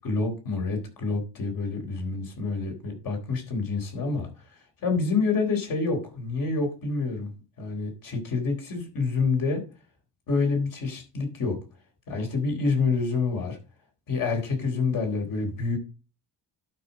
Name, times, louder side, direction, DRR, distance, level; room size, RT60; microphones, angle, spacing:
voice 1, 0.0-4.3 4.8-7.3 7.6-9.6 10.3-11.6 12.1-13.6 14.1-15.8, left 4 dB, 50° left, 4 dB, 3.7 m, -27 dB
11.5 x 5.4 x 4.1 m, 0.33 s
cardioid pair, 170°, 42 cm